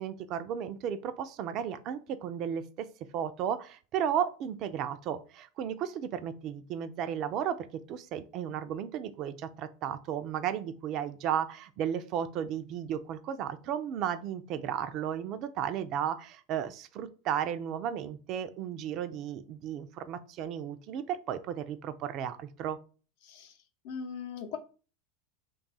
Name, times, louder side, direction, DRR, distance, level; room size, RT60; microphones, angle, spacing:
voice 1, 0.0-2.9 3.1-22.8, right 9 dB, 50° right, 0.4 m, -34 dB
voice 2, 23.8-24.6, left 6 dB, 65° left, 0.6 m, -39 dB
2.6 x 2.3 x 3.9 m
hypercardioid pair, 95°, 0 cm